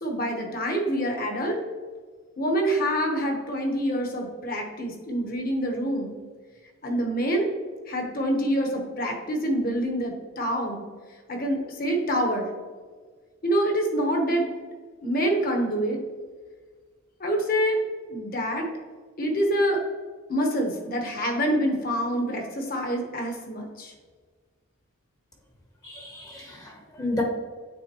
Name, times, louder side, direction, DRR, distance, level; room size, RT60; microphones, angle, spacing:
voice 1, 0.0-1.6 2.4-6.1 6.8-7.5 7.9-10.8 11.3-12.5 13.4-14.5 15.0-16.0 17.2-17.8 18.1-18.7 19.2-19.8 20.3-23.9, equal, 40° left, 2 dB, 1.1 m, -26 dB
voice 2, 25.8-27.2, left 1 dB, 15° left, 0 dB, 0.9 m, -32 dB
8.9 x 3.8 x 3.0 m, 1.5 s
head